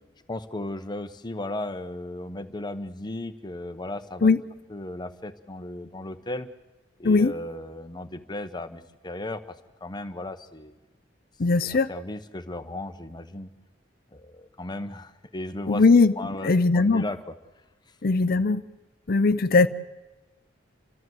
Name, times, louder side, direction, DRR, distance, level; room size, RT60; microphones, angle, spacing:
voice 1, 0.3-4.3 4.7-6.5 7.0-9.4 9.8-10.7 11.6-13.5 14.1-15.8 16.2-17.2, left 1 dB, 25° left, 9 dB, 0.9 m, -35 dB
voice 2, 11.4-11.9 15.7-16.1 16.4-17.0 18.0-18.6 19.1-19.7, left 3 dB, 50° left, 11 dB, 0.6 m, -19 dB
29.5 x 13.5 x 7.9 m, 1.1 s
head